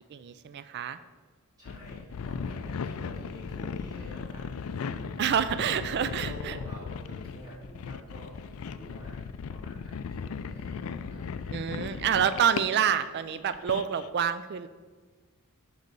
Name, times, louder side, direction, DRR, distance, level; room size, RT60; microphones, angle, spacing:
voice 1, 0.1-1.0 1.7-1.8 5.2-6.6 11.5-14.7, right 8 dB, 50° right, 12 dB, 0.3 m, -28 dB
voice 2, 1.6-4.5 4.8-5.8 6.2-12.0, equal, 15° right, -6 dB, 2.8 m, -48 dB
sound 1, 1.7-13.1 13.4-14.1, left 6 dB, 65° left, 0.4 m, -37 dB
6.7 x 4.8 x 6.6 m, 1.4 s
head